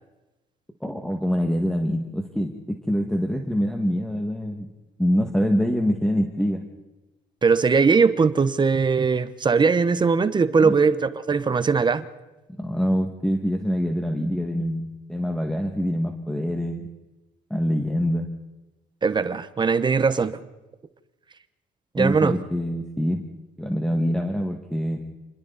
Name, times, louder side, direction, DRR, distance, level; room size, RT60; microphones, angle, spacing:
voice 1, 0.8-4.7 5.0-6.6 10.6-10.7 12.6-16.9 17.5-18.3 21.9-23.2 23.6-25.0, equal, 5° left, 3 dB, 2.0 m, -25 dB
voice 2, 7.4-12.0 19.0-20.4 21.9-22.4, right 5 dB, 25° right, 13 dB, 1.1 m, -20 dB
29.5 x 21.0 x 4.2 m, 1.1 s
cardioid pair, 110°, 17 cm